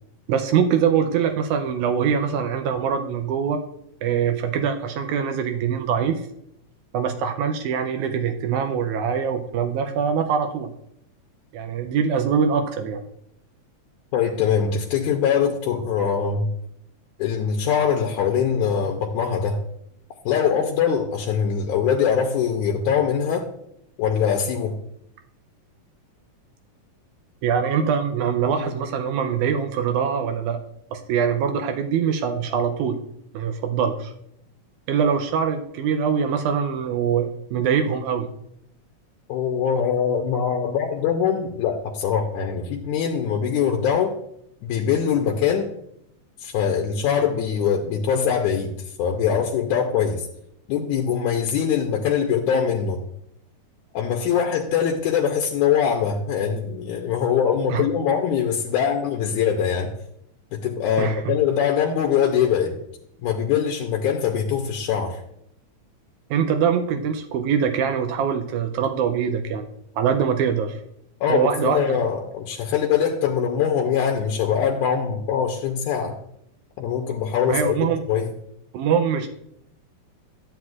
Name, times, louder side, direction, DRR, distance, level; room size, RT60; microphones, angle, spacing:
voice 1, 0.3-3.6 4.0-6.2 6.9-10.7 11.5-13.0 27.4-30.6 30.9-33.0 33.3-34.1 34.9-38.3 57.7-57.8 61.0-61.4 66.3-69.7 70.0-70.8 71.3-71.9 77.5-78.0 78.7-79.3, right 7 dB, 85° right, 6 dB, 2.0 m, -23 dB
voice 2, 14.1-16.5 17.2-19.6 20.3-23.5 24.0-24.7 39.3-44.2 44.6-45.7 46.4-48.7 49.0-50.2 50.7-53.0 53.9-59.9 60.5-62.8 63.2-65.2 71.2-76.2 76.8-78.3, left 7 dB, 90° left, 2 dB, 2.2 m, -22 dB
11.5 x 7.8 x 2.4 m, 0.75 s
omnidirectional pair, 3.4 m